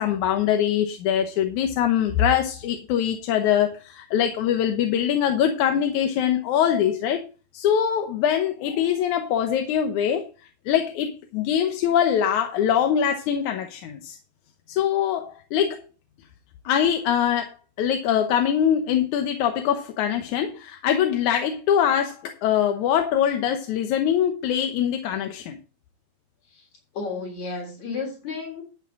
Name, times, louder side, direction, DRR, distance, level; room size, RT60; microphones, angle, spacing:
voice 1, 0.0-7.2 7.5-10.3 10.7-14.2 14.7-15.8 16.7-25.6, left 9 dB, 90° left, 5 dB, 2.4 m, -23 dB
voice 2, 26.9-28.6, left 4 dB, 75° left, 2 dB, 5.1 m, -32 dB
12.0 x 8.6 x 3.7 m, 0.33 s
omnidirectional pair, 3.3 m